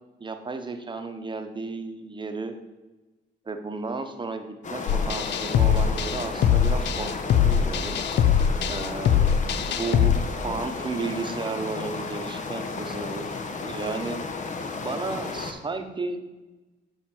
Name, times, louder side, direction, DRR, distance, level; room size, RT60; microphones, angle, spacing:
voice 1, 0.2-2.5 3.4-8.0 8.7-10.2 10.4-13.3 13.6-14.2 14.8-16.2, right 3 dB, 25° right, 6 dB, 1.0 m, -33 dB
sound 1, 4.6-15.5, left 3 dB, 40° left, 0.9 m, -33 dB
sound 2, 4.9-10.2, left 8 dB, 60° left, 0.4 m, -22 dB
7.4 x 5.7 x 4.4 m, 1.2 s
cardioid pair, 90°, 20 cm